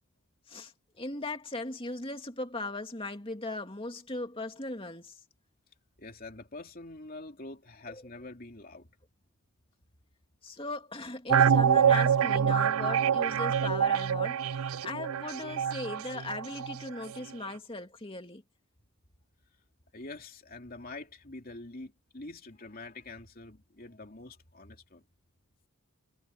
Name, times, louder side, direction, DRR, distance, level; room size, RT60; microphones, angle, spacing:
voice 1, 0.5-5.2 7.9-8.0 10.4-18.4, left 2 dB, 25° left, 2.6 m, -38 dB
voice 2, 6.0-8.9 19.9-25.0, left 2 dB, 40° left, 2.9 m, -45 dB
sound 1, 11.3-16.9 17.2-17.3, right 7 dB, 75° right, 0.4 m, -26 dB
head